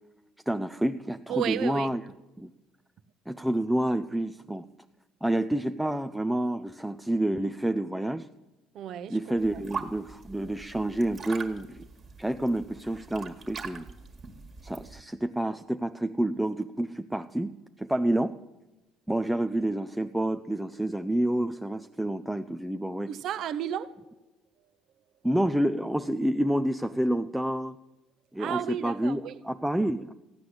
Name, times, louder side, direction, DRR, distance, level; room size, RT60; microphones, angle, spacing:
voice 1, 0.5-2.0 2.4-2.5 3.3-4.6 5.2-8.3 9.1-11.8 12.2-13.9 14.6-18.3 19.1-23.1 25.2-27.8 28.3-30.1, right 1 dB, 5° right, 0.4 m, -28 dB
voice 2, 1.3-1.9 8.7-9.2 23.1-23.9 28.4-29.3, right 10 dB, 55° right, 0.9 m, -32 dB
sound 1, 9.4-15.0, right 5 dB, 30° right, 1.8 m, -42 dB
15.5 x 10.0 x 7.9 m
cardioid pair, 140°, 0 cm